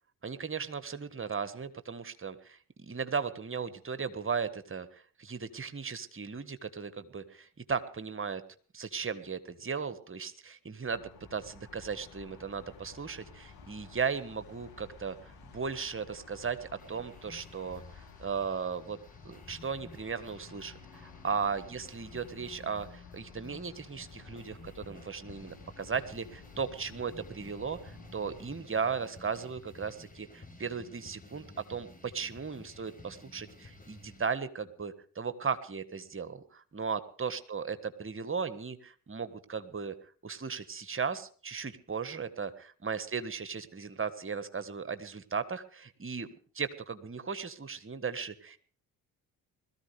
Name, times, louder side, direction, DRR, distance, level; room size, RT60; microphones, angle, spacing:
voice 1, 0.2-8.4 8.7-19.0 19.2-39.9 40.2-46.3 46.5-48.6, right 5 dB, 30° right, 12 dB, 1.5 m, -36 dB
sound 1, 10.8-28.5, left 5 dB, 60° left, 5.7 m, -53 dB
sound 2, 16.8-34.3, left 2 dB, 20° left, 4.6 m, -54 dB
20.5 x 14.0 x 3.4 m, 0.43 s
hypercardioid pair, 45°, 43 cm